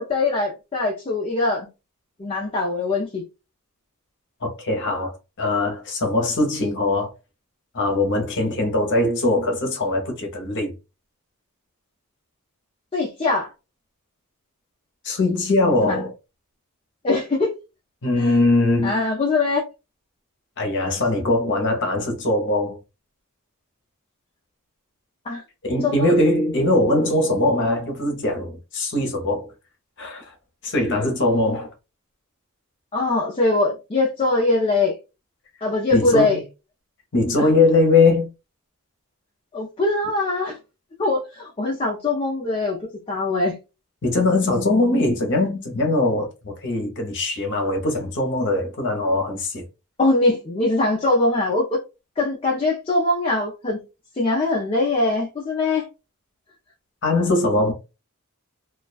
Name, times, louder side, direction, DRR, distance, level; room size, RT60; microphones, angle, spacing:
voice 1, 0.0-1.7 2.2-3.2 12.9-13.5 15.8-16.0 17.0-17.5 18.2-18.3 18.8-19.6 25.3-25.4 25.8-26.2 32.9-35.0 35.6-36.4 37.4-37.5 39.5-40.6 41.0-42.8 43.1-43.6 50.0-51.8 52.2-53.8 54.2-55.9, left 2 dB, 25° left, 0.5 m, -22 dB
voice 2, 4.4-7.1 7.7-10.7 15.0-16.1 18.0-19.0 20.6-22.8 25.7-29.5 30.0-30.3 30.6-31.7 35.9-36.4 37.1-38.3 44.0-49.6 57.0-57.7, left 2 dB, 55° left, 0.8 m, -21 dB
2.3 x 2.2 x 2.4 m
head